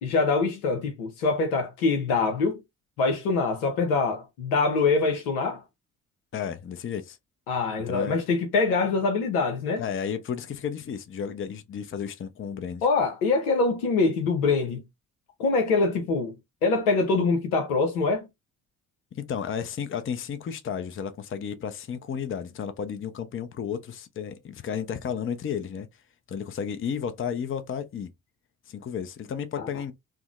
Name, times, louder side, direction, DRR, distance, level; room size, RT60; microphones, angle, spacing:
voice 1, 0.0-2.6 3.0-5.6 7.5-9.8 12.8-14.8 15.4-16.3 16.6-18.3 29.6-29.7, left 4 dB, 85° left, 0.8 m, -24 dB
voice 2, 6.3-7.2 7.9-8.2 9.8-12.8 19.1-25.9 26.3-28.1 28.7-29.9, left 7 dB, 30° left, 0.6 m, -33 dB
3.5 x 2.0 x 2.3 m
hypercardioid pair, 45°, 43 cm